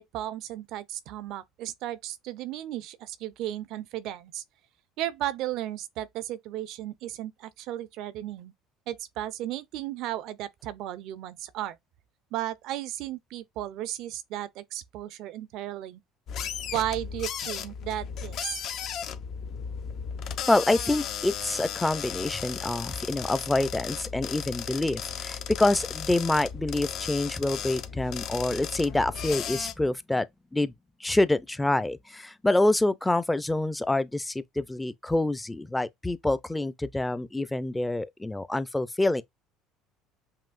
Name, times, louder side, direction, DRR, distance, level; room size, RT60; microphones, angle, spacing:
voice 1, 0.0-4.4 5.0-8.5 8.9-11.8 12.3-16.0 16.7-18.6, right 13 dB, 65° right, 0.5 m, -34 dB
sound 1, 16.3-29.7, left 8 dB, 60° left, 0.6 m, -35 dB
voice 2, 20.5-30.2 30.5-30.7 31.0-39.2, left 2 dB, 10° left, 0.5 m, -26 dB
5.6 x 2.5 x 2.5 m
hypercardioid pair, 80°, 0 cm